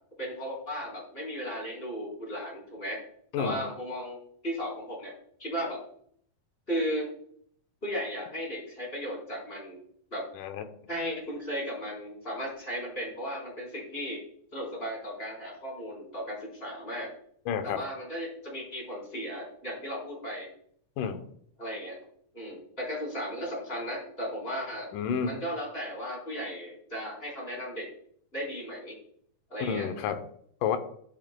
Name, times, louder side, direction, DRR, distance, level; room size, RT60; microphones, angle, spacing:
voice 1, 0.2-3.0 3.4-4.2 4.4-5.1 5.4-5.8 6.7-7.1 7.8-9.8 10.1-10.2 10.9-14.2 14.5-17.1 17.6-20.5 21.6-22.0 22.3-24.9 25.2-27.9 28.3-28.9 29.5-29.9, equal, 15° left, -3 dB, 4.0 m, -35 dB
voice 2, 17.5-17.8 21.0-21.2 24.9-25.4 29.6-30.2 30.6-30.8, left 7 dB, 85° left, 8 dB, 2.4 m, -30 dB
12.0 x 7.7 x 2.3 m, 0.63 s
omnidirectional pair, 3.6 m